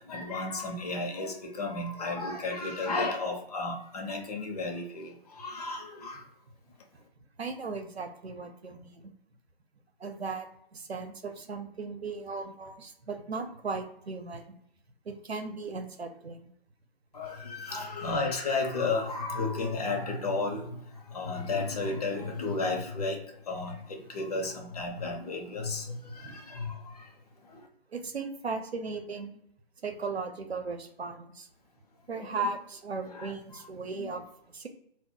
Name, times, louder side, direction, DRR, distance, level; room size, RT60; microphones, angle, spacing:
voice 1, 0.0-5.1 5.4-6.2 17.1-20.6 21.1-23.2 23.5-26.0 26.2-26.7 32.4-32.5 33.1-33.3 34.0-34.1, left 3 dB, 40° left, 2 dB, 0.8 m, -33 dB
voice 2, 7.4-9.1 10.0-10.5 10.7-14.4 15.1-16.5 26.2-26.4 27.9-29.4 29.8-31.5 32.1-34.7, right 4 dB, 90° right, 6 dB, 0.7 m, -37 dB
2.3 x 2.2 x 3.7 m, 0.73 s
figure-of-eight pair, 150°, 31 cm